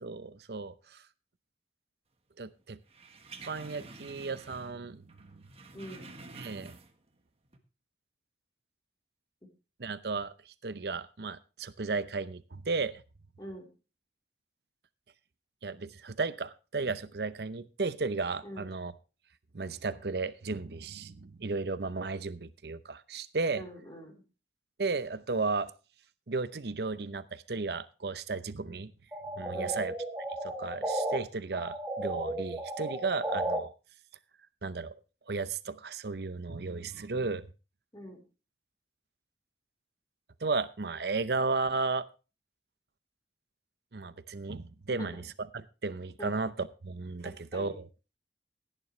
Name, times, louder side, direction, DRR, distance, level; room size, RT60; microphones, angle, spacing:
voice 1, 0.0-1.0 2.4-2.8 3.5-5.4 6.3-6.7 9.8-13.0 15.6-18.9 19.5-23.7 24.8-25.7 26.3-28.9 29.4-29.9 30.4-33.7 34.6-35.0 35.3-37.5 40.4-42.1 43.9-47.9, right 3 dB, 65° right, 14 dB, 0.7 m, -34 dB
sound 1, 2.9-4.8 5.1-7.1 7.5-7.6, right 3 dB, 35° right, 1.4 m, -49 dB
voice 2, 5.7-6.1 13.4-13.7 18.4-18.7 23.6-24.2 29.5-29.8 37.9-38.3 45.0-45.2 46.2-46.3 47.2-47.8, equal, 20° left, 0 dB, 3.7 m, -44 dB
sound 2, 29.1-31.2 31.5-33.6, right 1 dB, 10° right, 1.6 m, -34 dB
16.5 x 10.0 x 3.2 m, 0.32 s
head